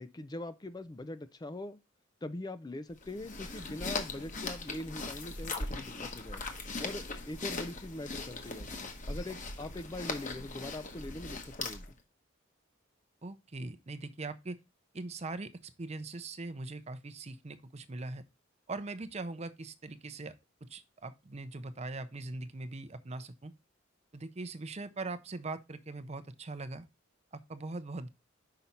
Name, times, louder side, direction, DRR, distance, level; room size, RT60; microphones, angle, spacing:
voice 1, 0.0-1.8 2.2-6.4 6.8-8.7 9.1-11.9, left 1 dB, 20° left, 0.4 m, -42 dB
sound 1, 3.0-12.0, left 3 dB, 40° left, 1.1 m, -39 dB
voice 2, 13.2-14.6 14.9-18.2 18.7-23.5 24.1-26.9 27.3-28.1, right 3 dB, 35° right, 0.6 m, -41 dB
5.8 x 5.2 x 4.2 m
head